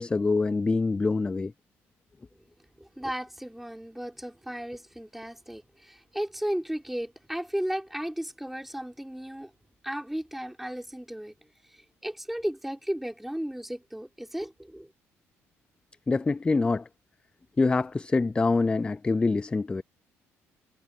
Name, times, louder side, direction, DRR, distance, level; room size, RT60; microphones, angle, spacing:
voice 1, 0.0-1.5 16.1-16.9 17.6-19.8, left 3 dB, 20° left, 0.3 m, -25 dB
voice 2, 2.8-9.5 9.8-11.3 11.7-14.9, equal, 5° right, 4.2 m, -35 dB
supercardioid pair, 80°, 6 cm